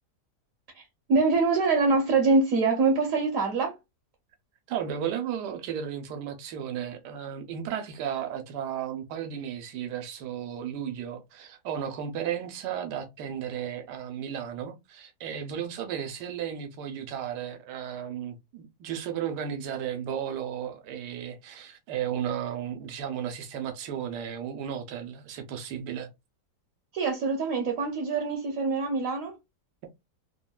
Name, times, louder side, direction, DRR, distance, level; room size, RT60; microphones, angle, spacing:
voice 1, 1.1-3.8 26.9-29.3, right 3 dB, 65° right, 1.0 m, -24 dB
voice 2, 4.7-26.1, right 9 dB, 90° right, 1.2 m, -34 dB
3.3 x 2.1 x 2.2 m
omnidirectional pair, 1.7 m